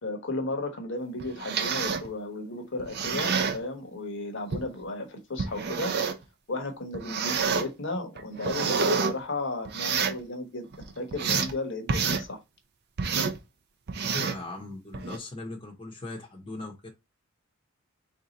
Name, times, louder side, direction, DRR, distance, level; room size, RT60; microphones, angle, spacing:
voice 1, 0.0-5.9 6.5-10.7 11.0-12.4, left 2 dB, 60° left, 1.0 m, -34 dB
sound 1, 1.2-2.1 2.8-3.6 4.5-4.6 5.4-6.2 6.9-7.7 8.2-9.1 9.7-10.2 10.7-11.5 11.9-12.3 13.0-13.4 13.9-14.4 14.9-15.2, right 5 dB, 50° right, 0.5 m, -28 dB
voice 2, 14.1-16.9, left 2 dB, 25° left, 0.8 m, -39 dB
3.6 x 2.7 x 4.0 m
head